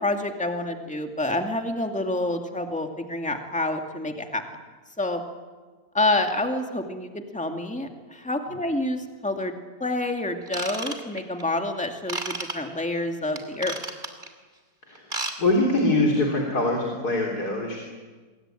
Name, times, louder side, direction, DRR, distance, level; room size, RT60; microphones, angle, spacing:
voice 1, 0.0-4.4 5.0-5.2 5.9-13.7, left 2 dB, 5° left, 4 dB, 2.1 m, -28 dB
Ratchet pawl / Tools, 10.5-11.4 12.1-12.5 13.4-14.3 15.0-15.4 15.6-15.8 16.3-16.4, right 2 dB, 30° right, 2.9 m, -32 dB
voice 2, 14.8-17.8, left 2 dB, 80° left, 0 dB, 4.2 m, -24 dB
27.0 x 22.0 x 9.1 m, 1.4 s
omnidirectional pair, 1.7 m